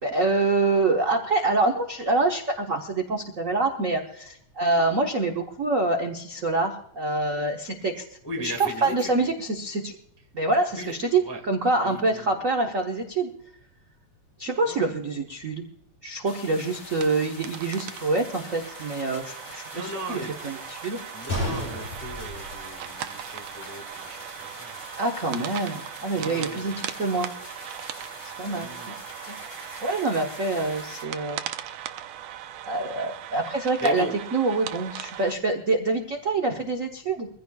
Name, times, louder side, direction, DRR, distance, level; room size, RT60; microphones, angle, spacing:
voice 1, 0.0-8.0 8.4-10.0 10.3-13.3 14.4-15.6 16.0-21.0 25.0-27.3 28.4-28.9 29.3-29.4 29.8-31.4 32.7-34.1 34.3-37.3, right 3 dB, 55° right, 4 dB, 0.9 m, -26 dB
voice 2, 8.2-9.3 10.7-11.4 11.8-12.4 14.6-14.9 19.7-20.3 21.1-24.8 26.1-26.7 28.4-28.9 33.8-34.1, right 1 dB, 10° left, 2 dB, 0.8 m, -37 dB
sound 1, 16.3-31.0, left 3 dB, 40° left, 2.0 m, -45 dB
sound 2, 16.6-35.4, right 11 dB, 75° right, 1.8 m, -39 dB
Gunshot gunfire, 21.3-23.3 23.6-23.7 24.4-24.6, left 1 dB, 65° left, 8.9 m, -32 dB
23.5 x 15.5 x 2.3 m, 0.69 s
omnidirectional pair, 3.3 m